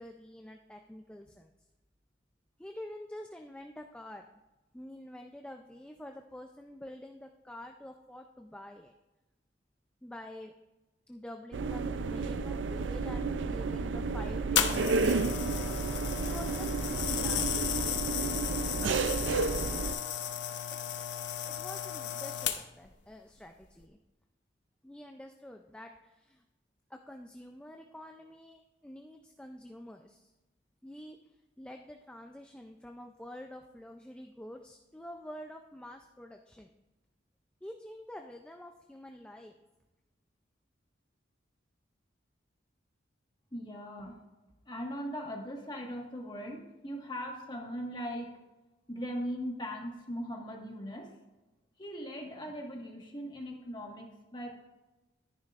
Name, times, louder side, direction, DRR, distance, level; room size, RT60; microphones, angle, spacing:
voice 1, 0.0-1.5 2.6-4.2 4.7-8.9 10.0-10.5 11.1-15.4 16.2-17.7 19.0-19.2 20.7-20.8 21.5-24.0 24.8-26.4 26.9-30.3 30.8-31.2 31.6-36.7 37.6-39.6, left 1 dB, 5° left, 3 dB, 0.4 m, -47 dB
sound 1, 11.5-19.9, right 4 dB, 75° right, 0.4 m, -31 dB
sound 2, 14.6-22.9 23.6-23.8, left 9 dB, 70° left, 0.8 m, -34 dB
voice 2, 43.5-44.2 44.7-48.3 48.9-51.1 51.8-54.5, equal, 25° left, 0 dB, 1.5 m, -39 dB
13.0 x 10.5 x 2.5 m, 1.1 s
head